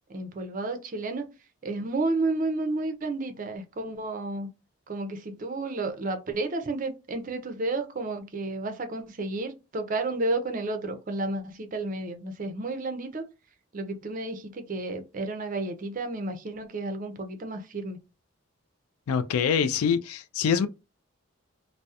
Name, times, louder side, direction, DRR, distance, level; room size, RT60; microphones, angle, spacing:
voice 1, 0.1-1.3 1.6-4.5 4.9-13.3 13.7-18.0, right 2 dB, 40° right, 0.4 m, -31 dB
voice 2, 19.1-20.7, left 7 dB, 85° left, 0.3 m, -25 dB
2.7 x 2.0 x 2.3 m
head